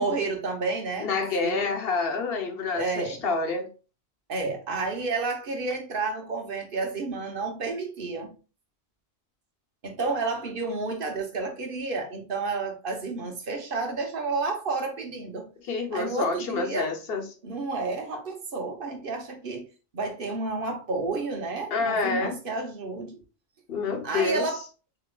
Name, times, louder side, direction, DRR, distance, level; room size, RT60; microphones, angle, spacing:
voice 1, 0.0-1.1 1.4-1.7 2.7-3.2 4.3-8.4 9.8-15.5 15.9-16.9 17.4-19.7 19.9-23.2 24.0-24.6, right 3 dB, 60° right, 1.0 m, -30 dB
voice 2, 1.0-3.7 15.6-17.2 21.7-22.4 23.7-24.5, left 4 dB, 65° left, 1.0 m, -28 dB
6.7 x 2.9 x 2.2 m
omnidirectional pair, 1.1 m